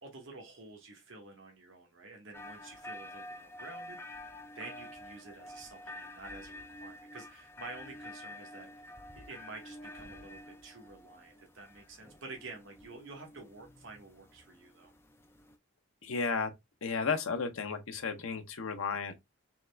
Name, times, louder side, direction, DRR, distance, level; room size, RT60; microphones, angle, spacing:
voice 1, 0.0-4.2 4.5-8.9 9.2-14.9, right 3 dB, 60° right, 1.0 m, -50 dB
sound 1, 2.3-15.6, left 1 dB, 10° left, 0.4 m, -49 dB
voice 2, 16.0-16.5 16.8-19.2, left 5 dB, 70° left, 0.7 m, -33 dB
3.6 x 3.1 x 3.2 m
head